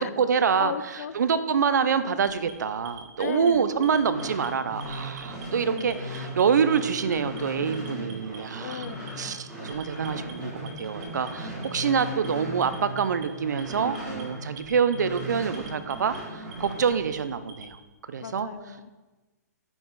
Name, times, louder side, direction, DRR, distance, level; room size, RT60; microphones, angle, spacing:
voice 1, 0.0-0.7 1.1-8.8 9.2-17.8 18.1-18.5, right 6 dB, 80° right, 12 dB, 0.5 m, -26 dB
voice 2, 0.6-1.2 3.2-3.7 5.6-5.9 8.6-9.2 18.2-18.9, left 7 dB, 60° left, 13 dB, 0.4 m, -35 dB
Alarm, 2.2-3.5 3.8-4.5 4.8-5.4 5.8-6.4 6.7-7.4 7.7-8.4 8.7-9.3 9.7-10.3 10.7-11.3 11.6-12.3 12.6-13.2 13.6-14.2 14.6-15.2 15.5-16.2 16.5-17.7, right 5 dB, 30° right, 1.0 m, -46 dB
sound 1, 3.9-14.6 14.9-16.8, equal, 5° right, 1.8 m, -38 dB
5.6 x 5.3 x 4.6 m, 1.2 s
hypercardioid pair, 165°, 9 cm